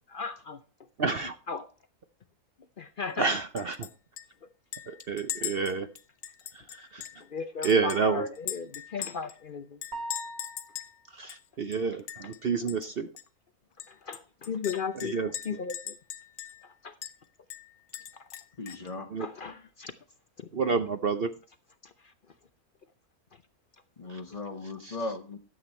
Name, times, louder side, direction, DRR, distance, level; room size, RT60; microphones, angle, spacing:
voice 1, 0.1-0.6 1.2-1.7 2.8-3.3 7.3-9.8 13.9-15.1 15.4-16.0 16.8-16.9 19.2-19.9 20.4-20.5 21.8-22.1, left 5 dB, 55° left, 0.6 m, -36 dB
voice 2, 1.0-1.4 3.2-3.9 4.9-5.9 6.8-7.0 7.6-8.3 11.1-13.1 15.0-15.3 19.1-19.3 20.5-21.3 24.1-24.2 24.8-25.0, right 5 dB, 50° right, 0.8 m, -29 dB
Chink clink, 3.6-3.9 4.2-4.3 4.7-7.2 7.6-9.4 9.8-10.9 11.3-11.4 11.7-12.4 12.7-12.9 13.2-13.3 13.8-16.7 17.0-17.1 17.5-18.9, left 10 dB, 85° left, 1.3 m, -40 dB
sound 1, 9.9-11.0, right 1 dB, 65° right, 2.6 m, -40 dB
voice 3, 18.6-19.1 24.0-25.4, left 2 dB, 30° left, 1.1 m, -37 dB
12.5 x 8.0 x 4.3 m
omnidirectional pair, 1.6 m